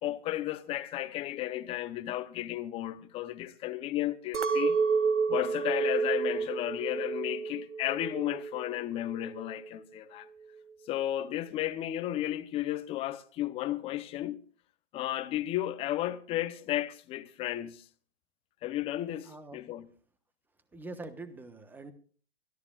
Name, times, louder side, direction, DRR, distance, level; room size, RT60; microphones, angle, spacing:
voice 1, 0.0-4.8 5.3-10.3 10.9-14.4 14.9-17.8 18.6-19.9, left 14 dB, 15° left, 0.8 m, -33 dB
Chink clink, 4.3-8.7 9.1-9.7, right 5 dB, 80° right, 1.6 m, -30 dB
voice 2, 19.2-19.6 20.7-21.9, right 2 dB, 5° right, 1.1 m, -44 dB
25.0 x 13.5 x 2.4 m
hypercardioid pair, 150°, 35 cm